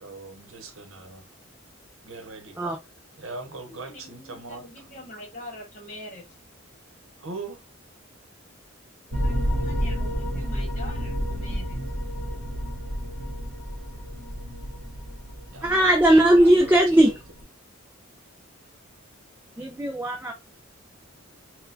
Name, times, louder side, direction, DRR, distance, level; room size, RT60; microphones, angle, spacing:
voice 1, 0.0-1.3 2.0-2.6 3.2-4.6 7.2-7.6 15.5-17.2, right 3 dB, 70° right, 0.8 m, -40 dB
voice 2, 3.7-6.3 9.1-11.8, left 1 dB, 35° left, 1.3 m, -44 dB
sound 1, 9.1-17.4, equal, 40° right, 1.2 m, -30 dB
voice 3, 15.6-17.2 19.6-20.3, right 1 dB, 10° right, 0.4 m, -18 dB
4.0 x 2.2 x 2.6 m
head